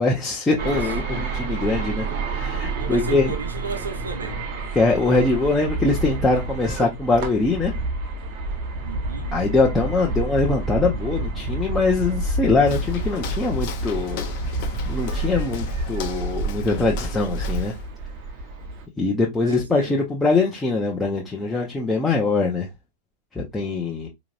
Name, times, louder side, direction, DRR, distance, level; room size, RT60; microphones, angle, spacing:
voice 1, 0.0-3.3 4.7-7.7 9.3-14.3 14.9-17.7 19.0-22.7 23.3-24.1, left 3 dB, 10° left, 0.9 m, -22 dB
sound 1, 0.6-18.9, right 2 dB, 45° right, 1.0 m, -29 dB
voice 2, 0.6-0.9 2.8-4.4 8.8-9.3 19.4-20.0, right 4 dB, 70° right, 1.0 m, -34 dB
Walk footsteps, 12.6-17.9, left 5 dB, 45° left, 1.0 m, -37 dB
4.9 x 3.0 x 2.4 m
figure-of-eight pair, 90°, 0 cm